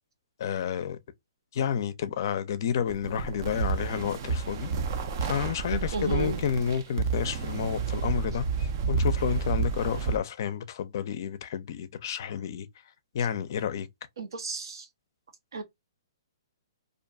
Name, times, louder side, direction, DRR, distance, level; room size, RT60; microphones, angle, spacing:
voice 1, 0.4-1.0 1.5-4.7 5.3-12.7 13.1-13.9, left 8 dB, 55° left, 0.4 m, -30 dB
sound 1, 2.9-10.2, right 5 dB, 45° right, 0.4 m, -30 dB
voice 2, 5.9-6.4 14.2-14.9 15.5-15.6, right 4 dB, 80° right, 0.7 m, -33 dB
2.5 x 2.2 x 2.6 m
hypercardioid pair, 145°, 2 cm